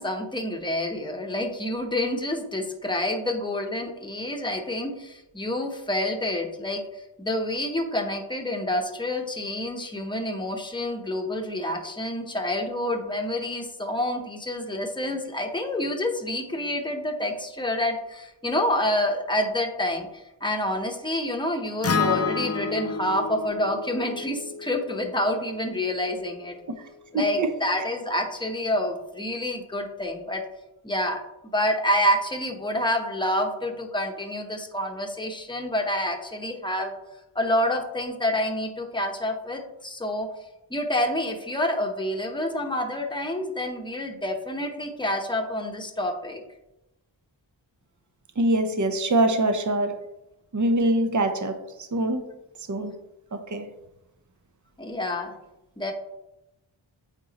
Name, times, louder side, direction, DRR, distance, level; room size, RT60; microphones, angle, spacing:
voice 1, 0.0-6.8 7.2-26.6 27.1-30.4 30.8-31.2 31.5-36.9 37.3-40.3 40.7-46.4 54.8-55.3 55.8-55.9, left 1 dB, 10° left, 3 dB, 0.9 m, -28 dB
Acoustic guitar, 21.8-26.1, left 5 dB, 35° left, 0.6 m, -30 dB
voice 2, 27.1-27.5 48.4-50.0 50.5-51.6 51.9-52.3 52.7-52.9 53.5-53.7, right 1 dB, 40° right, 7 dB, 0.7 m, -23 dB
8.9 x 3.9 x 2.9 m, 0.91 s
wide cardioid pair, 50°, 46 cm